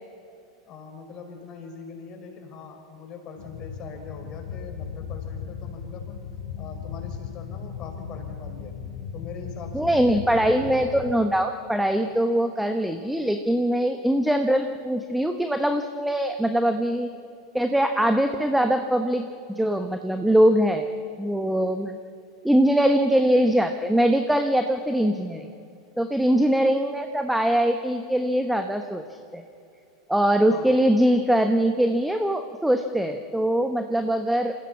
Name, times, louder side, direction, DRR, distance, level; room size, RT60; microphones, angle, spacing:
voice 1, 0.7-6.2 6.6-8.8 9.1-10.9 30.5-30.8, left 5 dB, 35° left, 2 dB, 5.2 m, -42 dB
sound 1, 3.4-11.1, left 7 dB, 60° left, 1.7 m, -37 dB
voice 2, 9.7-17.1 17.5-20.9 21.2-22.0 22.4-25.5 26.0-29.0 29.3-29.4 30.1-34.5, right 1 dB, 5° right, 6 dB, 1.1 m, -22 dB
28.0 x 15.5 x 7.3 m, 2.5 s
figure-of-eight pair, 85°, 2 cm